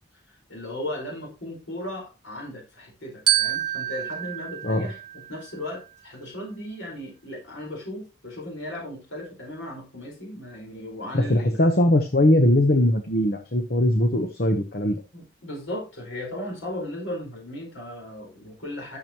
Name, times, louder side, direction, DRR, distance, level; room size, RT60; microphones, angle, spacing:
voice 1, 0.5-5.0 5.3-11.6 15.1-19.0, left 1 dB, 85° left, -1 dB, 4.7 m, -36 dB
Glockenspiel, 3.3-5.7, right 12 dB, 25° right, 1.3 m, -27 dB
voice 2, 11.1-15.0, left 1 dB, 50° left, 6 dB, 1.0 m, -20 dB
12.5 x 7.1 x 3.0 m, 0.29 s
head